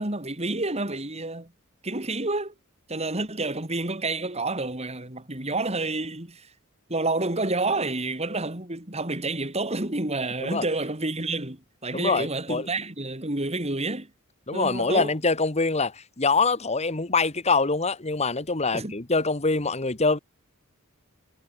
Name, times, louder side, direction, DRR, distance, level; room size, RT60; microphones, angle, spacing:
voice 1, 0.0-1.5 1.8-2.5 2.9-6.5 6.9-14.1 14.5-15.1 18.7-18.9, right 2 dB, 30° right, 3.6 m, -29 dB
voice 2, 11.9-12.7 14.5-20.2, left 4 dB, 30° left, 1.6 m, -24 dB
head